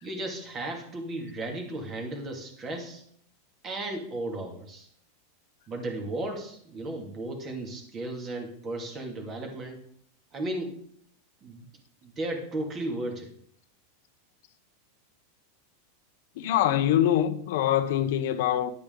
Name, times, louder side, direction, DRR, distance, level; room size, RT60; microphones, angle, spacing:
voice 1, 0.0-3.0 3.6-4.9 5.7-9.8 10.3-10.8 11.4-11.7 12.0-13.3, right 1 dB, 25° right, 2.5 m, -35 dB
voice 2, 16.4-18.7, left 11 dB, 65° left, 0.9 m, -24 dB
11.0 x 8.4 x 3.9 m
supercardioid pair, 140°, 0 cm